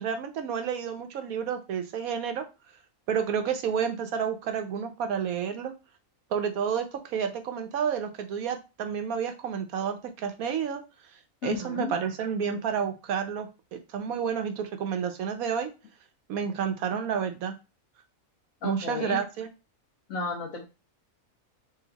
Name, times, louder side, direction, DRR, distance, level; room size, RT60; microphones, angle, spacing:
voice 1, 0.0-2.4 3.1-5.7 6.3-10.8 11.4-15.7 16.3-17.5 18.6-19.5, right 7 dB, 80° right, 7 dB, 1.2 m, -30 dB
voice 2, 11.4-11.9 18.6-19.2 20.1-20.6, left 4 dB, 70° left, 2 dB, 1.7 m, -33 dB
4.0 x 2.5 x 3.9 m, 0.28 s
omnidirectional pair, 1.5 m